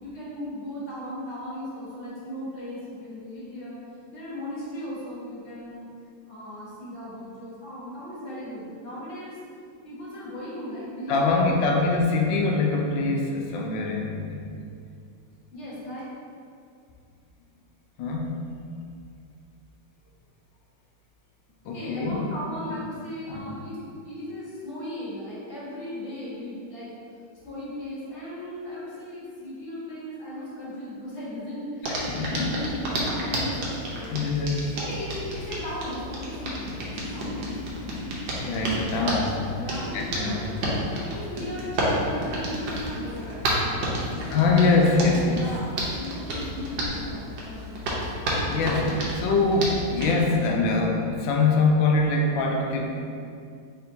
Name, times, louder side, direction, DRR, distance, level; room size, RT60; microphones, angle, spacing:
voice 1, 0.0-3.8 4.1-5.9 6.2-9.4 9.8-11.7 15.5-16.0 21.7-23.8 24.0-26.9 27.4-34.1 34.7-37.4 39.6-40.4 41.0-44.8 45.3-47.9, left 1 dB, 45° left, -8 dB, 1.4 m, -37 dB
voice 2, 11.1-14.5 18.0-18.3 21.7-22.2 23.3-23.5 31.9-32.5 34.1-34.7 38.4-39.5 39.9-40.5 44.3-45.5 48.5-52.9, left 3 dB, 85° left, 0 dB, 1.3 m, -23 dB
Hands, 31.8-50.1, equal, 85° right, 1.5 m, -31 dB
4.3 x 3.6 x 2.6 m, 2.4 s
omnidirectional pair, 2.0 m